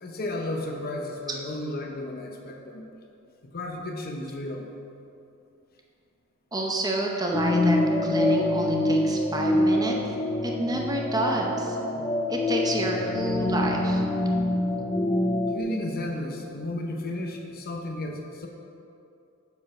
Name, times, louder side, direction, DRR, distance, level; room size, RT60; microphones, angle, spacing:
voice 1, 0.0-2.8 3.4-4.7 15.5-18.5, left 1 dB, 45° left, 2 dB, 0.8 m, -33 dB
voice 2, 6.5-10.0 10.4-11.8 12.3-14.1, right 2 dB, 20° right, 0 dB, 0.8 m, -29 dB
sound 1, 7.3-15.6, left 1 dB, 25° left, 0.4 m, -25 dB
7.4 x 5.4 x 6.1 m, 2.7 s
head